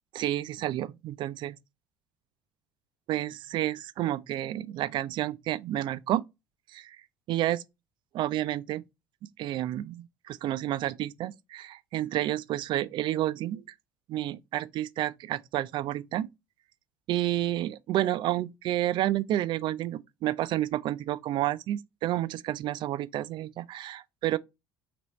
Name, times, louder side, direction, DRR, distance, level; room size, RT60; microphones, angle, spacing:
voice 1, 0.2-1.6 3.1-6.2 6.7-7.0 7.3-7.6 8.2-8.8 9.4-13.6 14.1-16.3 17.1-24.4, right 13 dB, 55° right, 0.4 m, -30 dB
3.4 x 2.9 x 4.1 m
hypercardioid pair, 65°, 10 cm